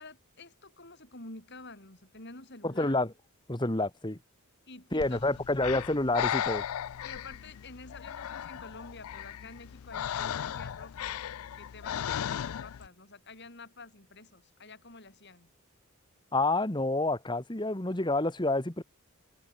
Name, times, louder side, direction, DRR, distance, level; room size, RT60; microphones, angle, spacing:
voice 1, 0.0-2.9 4.7-5.3 7.0-11.2 11.6-15.5, left 3 dB, 50° left, 5.6 m, -49 dB
voice 2, 2.6-3.1 3.5-4.2 4.9-6.6 16.3-18.8, left 2 dB, 20° left, 1.6 m, -28 dB
Breathing, 5.0-12.9, left 9 dB, 75° left, 0.4 m, -36 dB
head